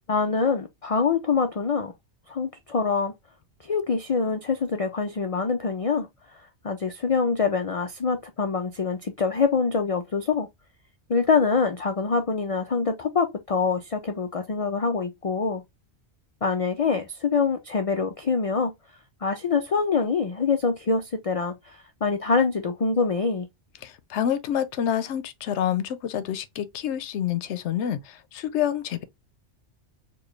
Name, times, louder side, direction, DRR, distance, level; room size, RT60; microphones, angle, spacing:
voice 1, 0.1-1.9 2.3-3.1 3.6-6.1 6.6-10.5 11.1-15.6 16.4-18.7 19.2-23.5, left 5 dB, 55° left, 0.4 m, -25 dB
voice 2, 23.8-29.0, left 10 dB, 90° left, 0.9 m, -28 dB
4.4 x 2.3 x 3.1 m
omnidirectional pair, 1.2 m